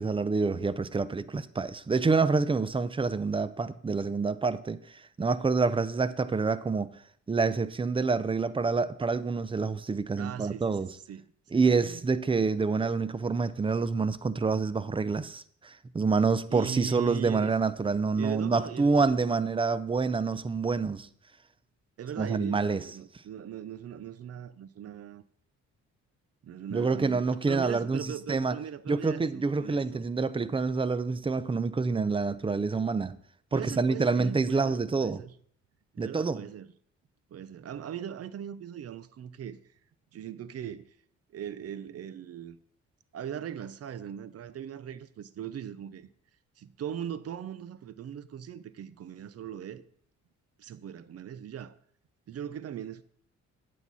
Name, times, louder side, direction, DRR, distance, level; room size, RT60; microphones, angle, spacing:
voice 1, 0.0-4.8 5.2-6.9 7.3-10.9 11.5-21.1 22.2-22.8 26.7-28.5 28.9-33.2 33.5-35.2 36.0-36.4, right 4 dB, 20° right, 0.5 m, -27 dB
voice 2, 10.2-10.7 11.1-11.2 11.5-12.0 16.5-17.5 18.2-19.4 22.0-25.2 26.4-30.0 33.5-35.3 35.9-36.7 37.3-39.6 40.1-40.9 41.3-42.6 43.1-46.1 46.6-49.8 50.6-51.8 52.3-53.0, right 9 dB, 55° right, 0.7 m, -39 dB
9.1 x 8.2 x 4.1 m
cardioid pair, 90°, 30 cm